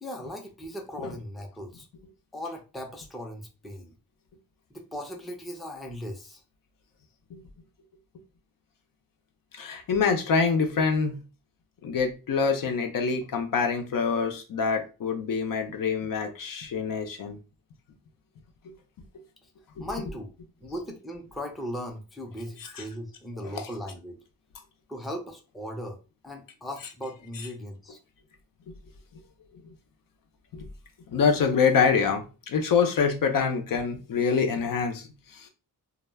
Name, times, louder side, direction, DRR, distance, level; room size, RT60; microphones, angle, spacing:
voice 1, 0.0-1.9 2.3-3.9 4.7-6.4 19.4-19.5 19.8-20.3 20.6-24.2 24.9-26.0 26.2-28.0, equal, ahead, 0.5 m, -38 dB
voice 2, 9.6-11.2 11.8-17.4 19.8-19.9 23.4-23.6 29.6-29.7 30.5-30.6 31.1-35.1 35.3-35.5, left 5 dB, 65° left, 0.6 m, -25 dB
2.2 x 2.1 x 3.3 m
wide cardioid pair, 100°, 37 cm